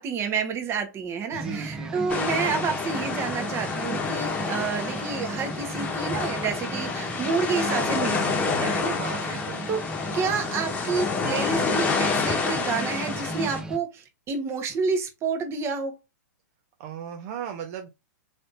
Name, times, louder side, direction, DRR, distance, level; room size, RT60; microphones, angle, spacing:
voice 1, 0.0-9.0 9.2-9.4 9.7-9.8 10.1-16.0, right 5 dB, 25° right, 1.1 m, -29 dB
sound 1, 1.3-13.8, right 2 dB, 5° right, 0.4 m, -36 dB
voice 2, 1.3-2.3 8.9-9.6 16.8-17.9, right 9 dB, 50° right, 0.7 m, -37 dB
sound 2, 2.1-13.6, left 5 dB, 15° left, 1.2 m, -28 dB
4.1 x 3.3 x 2.5 m
hypercardioid pair, 115°, 10 cm